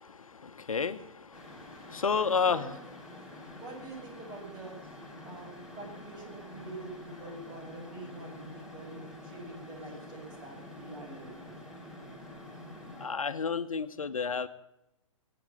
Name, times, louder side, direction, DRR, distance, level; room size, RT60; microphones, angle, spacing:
voice 1, 0.0-2.7 3.1-3.6 5.1-5.3 13.0-14.5, left 5 dB, 80° left, 12 dB, 1.0 m, -32 dB
sound 1, 1.3-13.1, left 1 dB, 5° right, 4.1 m, -48 dB
voice 2, 2.2-2.7 3.5-4.8 5.2-11.4, right 2 dB, 25° right, 0 dB, 7.4 m, -45 dB
21.5 x 8.8 x 7.6 m, 0.87 s
figure-of-eight pair, 125°, 17 cm